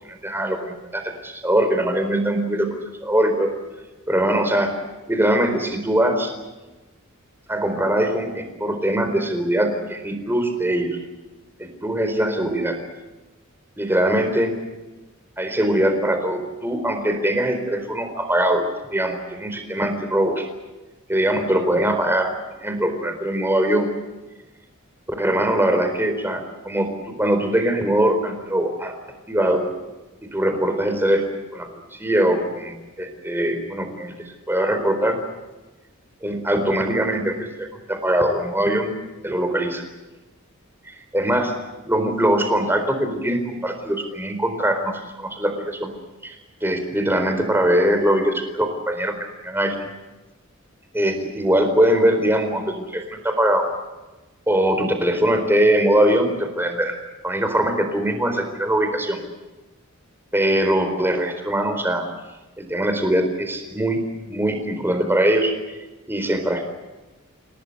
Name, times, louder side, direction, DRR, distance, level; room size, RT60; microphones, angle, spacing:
voice 1, 0.1-2.7 3.0-3.5 4.1-4.7 5.1-6.3 7.5-11.0 11.6-12.8 13.8-14.5 15.4-20.5 21.1-22.3 22.6-23.9 25.2-26.9 27.2-28.9 29.3-29.6 30.2-31.2 31.5-34.1 34.5-35.2 36.2-38.9 39.2-39.8 40.9-41.5 41.9-45.9 46.2-49.9 50.9-53.7 54.5-56.9 57.2-59.2 60.3-62.1 62.6-64.0 64.3-65.5 66.1-66.7, right 1 dB, 10° right, 6 dB, 4.3 m, -22 dB
28.5 x 18.5 x 8.0 m, 1.1 s
head